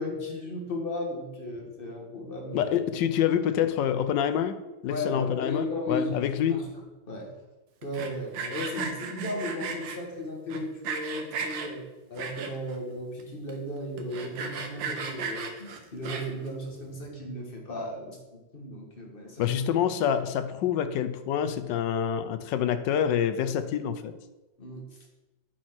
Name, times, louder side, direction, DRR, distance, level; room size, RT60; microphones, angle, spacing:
voice 1, 0.0-2.7 4.9-6.6 7.0-7.3 7.8-19.6 24.6-24.9, left 1 dB, 30° left, 0 dB, 1.6 m, -35 dB
voice 2, 2.5-4.6 4.8-6.7 19.4-24.1, left 9 dB, 80° left, 11 dB, 1.3 m, -27 dB
Sawing, 7.8-10.0 10.5-11.7 12.2-12.8 13.2-13.3 13.5-13.6 14.0-16.5, right 5 dB, 90° right, 1.7 m, -35 dB
8.7 x 4.6 x 6.0 m, 1.1 s
omnidirectional pair, 2.0 m